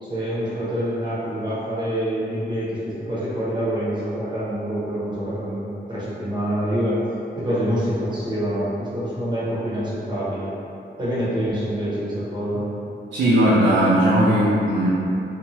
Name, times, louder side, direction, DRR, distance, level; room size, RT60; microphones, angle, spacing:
voice 1, 0.0-7.0 7.4-10.5 11.0-12.6, equal, 25° right, -10 dB, 0.8 m, -26 dB
voice 2, 13.1-14.9, right 1 dB, 75° right, -10 dB, 0.5 m, -17 dB
2.7 x 2.1 x 2.9 m, 2.7 s
wide cardioid pair, 175°, 19 cm